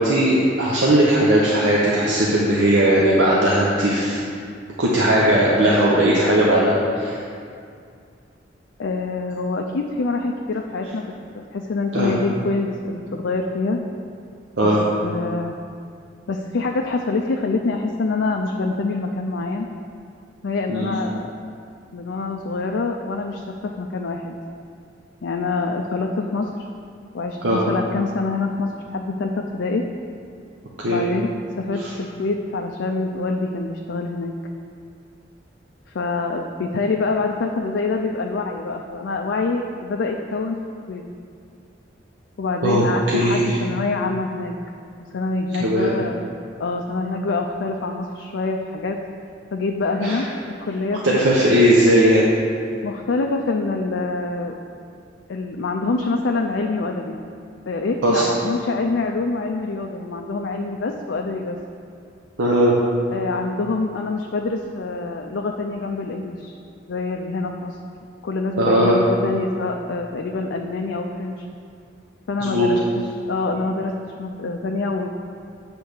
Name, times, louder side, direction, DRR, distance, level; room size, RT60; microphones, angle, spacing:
voice 1, 0.0-4.2 4.8-7.2 11.9-12.1 14.6-14.8 20.7-20.9 27.4-27.6 30.8-31.0 31.8-31.9 42.6-43.6 45.6-46.0 50.0-50.2 51.0-52.3 58.0-58.2 62.4-62.8 68.6-69.0 72.4-72.7, right 1 dB, 80° right, -5 dB, 0.9 m, -18 dB
voice 2, 8.8-13.8 14.6-14.7 15.0-15.5 16.3-19.7 20.4-21.3 21.9-24.4 25.2-26.5 27.1-29.9 30.9-34.3 35.9-40.6 40.9-41.0 42.4-44.5 44.9-46.2 46.6-49.0 49.5-51.2 52.8-54.5 55.3-57.2 57.6-61.6 63.1-66.5 66.9-67.8 68.2-71.5 72.3-75.1, left 3 dB, 75° left, 2 dB, 0.4 m, -25 dB
8.0 x 3.4 x 6.5 m, 2.4 s
head